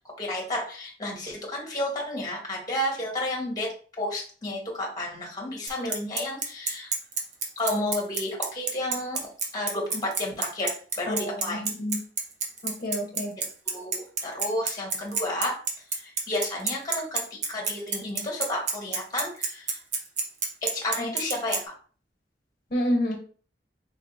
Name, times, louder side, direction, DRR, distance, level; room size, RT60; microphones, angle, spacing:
voice 1, 0.2-6.9 7.6-9.2 9.5-11.6 13.4-13.5 13.7-15.6 16.0-19.8 20.6-21.7, left 1 dB, 20° left, -1 dB, 1.2 m, -31 dB
Bicycle, 5.7-21.6, right 5 dB, 45° right, 0.7 m, -28 dB
voice 2, 11.1-12.0 12.6-13.3 22.7-23.2, equal, 40° left, 0 dB, 0.9 m, -28 dB
3.7 x 3.3 x 2.7 m, 0.41 s
head